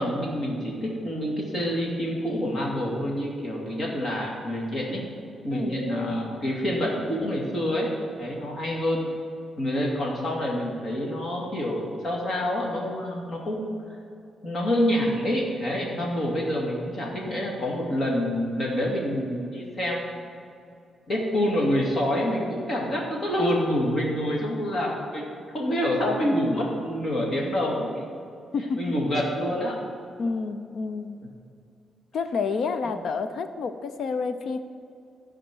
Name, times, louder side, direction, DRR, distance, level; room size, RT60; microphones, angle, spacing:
voice 1, 0.0-5.0 5.4-7.9 8.2-9.1 9.6-13.6 14.4-20.2 21.1-25.2 25.5-27.9 28.8-29.8, equal, 40° left, -3 dB, 2.4 m, -27 dB
voice 2, 5.5-5.8 28.5-28.9 30.2-31.2 32.1-34.6, left 4 dB, 55° left, 9 dB, 0.6 m, -29 dB
14.0 x 5.0 x 6.3 m, 2.5 s
wide cardioid pair, 160°, 0 cm